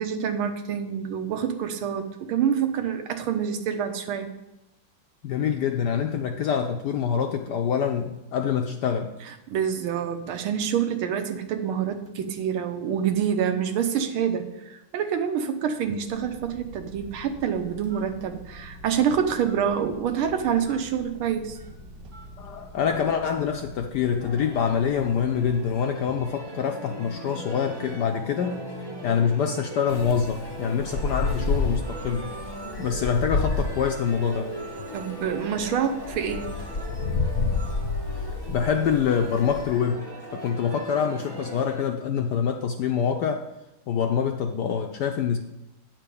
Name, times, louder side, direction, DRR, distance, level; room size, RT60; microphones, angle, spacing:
voice 1, 0.0-4.3 9.5-21.6 34.9-36.5, right 8 dB, 85° right, 7 dB, 1.7 m, -27 dB
voice 2, 5.2-9.1 22.4-28.6 29.0-32.3 32.8-34.5 38.5-40.1 40.3-43.4 43.9-45.4, left 7 dB, 75° left, 4 dB, 0.9 m, -25 dB
Telephone, 16.1-25.8, equal, 55° right, 1.1 m, -45 dB
sound 1, 24.2-41.9, right 1 dB, 20° right, 0.8 m, -39 dB
Wind, 29.9-39.8, left 4 dB, 50° left, 0.9 m, -30 dB
9.1 x 4.5 x 6.8 m, 0.95 s
omnidirectional pair, 2.3 m